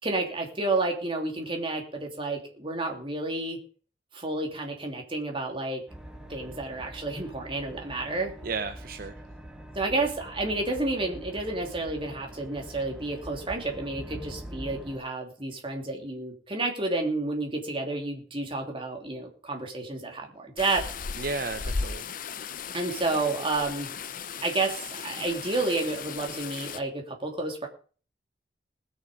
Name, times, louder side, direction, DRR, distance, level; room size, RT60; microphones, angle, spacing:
voice 1, 0.0-3.6 4.1-5.8 6.3-8.3 9.7-20.8 22.7-23.9 24.4-27.7, right 2 dB, 30° right, 1 dB, 2.9 m, -30 dB
sound 1, 5.9-15.0, right 1 dB, 5° right, 1.6 m, -44 dB
voice 2, 8.4-9.2 21.2-22.0, right 4 dB, 55° right, 8 dB, 0.8 m, -33 dB
sound 2, 20.6-26.8, left 5 dB, 50° left, 0.7 m, -36 dB
20.0 x 6.7 x 5.3 m, 0.41 s
head